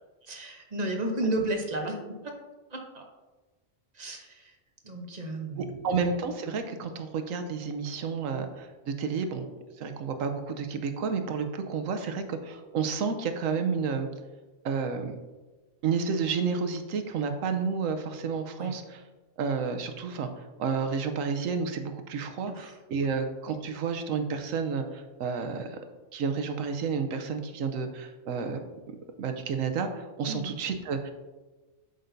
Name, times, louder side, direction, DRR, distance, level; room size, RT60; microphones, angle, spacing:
voice 1, 0.2-2.3 2.7-3.0 3.9-4.5 4.8-5.8 12.0-12.1 18.6-18.7 22.5-22.7 23.0-23.1 30.3-30.6, right 1 dB, 35° right, 2 dB, 0.9 m, -33 dB
voice 2, 5.6-9.5 9.8-14.1 14.6-15.1 15.8-19.0 19.4-20.3 20.6-25.8 26.1-28.6 29.2-31.1, right 5 dB, 75° right, 7 dB, 1.1 m, -31 dB
8.2 x 6.5 x 2.6 m, 1.2 s
omnidirectional pair, 1.4 m